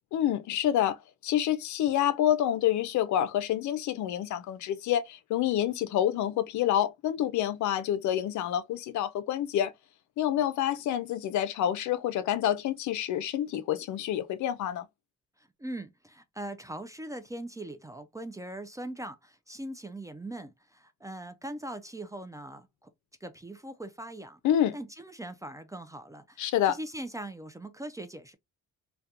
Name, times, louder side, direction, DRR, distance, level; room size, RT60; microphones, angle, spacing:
voice 1, 0.1-1.0 1.2-9.7 10.2-14.9 24.4-24.8 26.4-26.8, left 11 dB, 70° left, 0.5 m, -28 dB
voice 2, 15.4-22.9 23.2-24.4 24.7-28.4, right 1 dB, 10° right, 0.3 m, -41 dB
2.3 x 2.2 x 2.7 m
cardioid pair, 90°, 30 cm